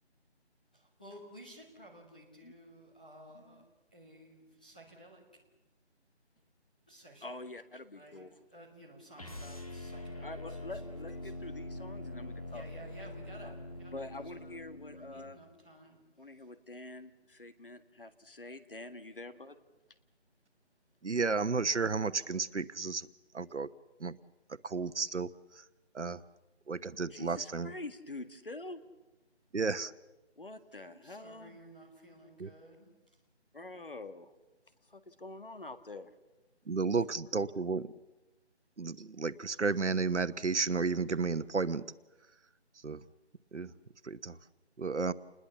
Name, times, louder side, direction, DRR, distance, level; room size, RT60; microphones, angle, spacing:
voice 1, 0.7-3.6 3.9-5.4 6.9-7.2 7.9-10.6 12.5-14.6 14.8-16.0 30.8-33.2, right 1 dB, 5° left, -6 dB, 1.6 m, -54 dB
voice 2, 3.3-3.6 7.2-8.4 10.2-12.7 13.4-13.5 13.9-15.4 16.2-19.6 27.1-28.8 30.4-31.6 33.5-34.3 34.8-36.1, left 2 dB, 50° left, 9 dB, 1.8 m, -46 dB
sound 1, 9.1-15.3, left 1 dB, 30° left, 1.7 m, -44 dB
voice 3, 21.0-23.1 23.3-23.7 24.0-24.2 24.6-25.6 25.9-26.2 26.7-27.7 29.5-29.9 32.4-32.5 36.7-37.9 38.8-41.8 42.8-43.0 43.5-43.7 44.0-44.4 44.8-45.1, right 4 dB, 90° right, 14 dB, 1.2 m, -32 dB
29.0 x 21.0 x 7.2 m, 1.1 s
figure-of-eight pair, 180°, 34 cm